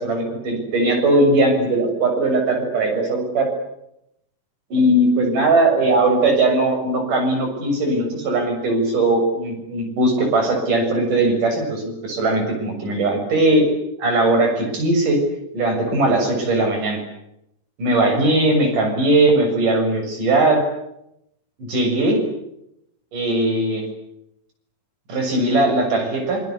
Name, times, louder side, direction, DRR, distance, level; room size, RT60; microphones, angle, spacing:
voice 1, 0.0-3.5 4.7-13.7 14.0-15.2 15.5-17.0 17.8-20.6 21.6-22.2 23.1-23.8 25.1-26.4, right 2 dB, 55° right, 3 dB, 8.4 m, -19 dB
26.5 x 24.5 x 8.5 m, 0.80 s
omnidirectional pair, 4.5 m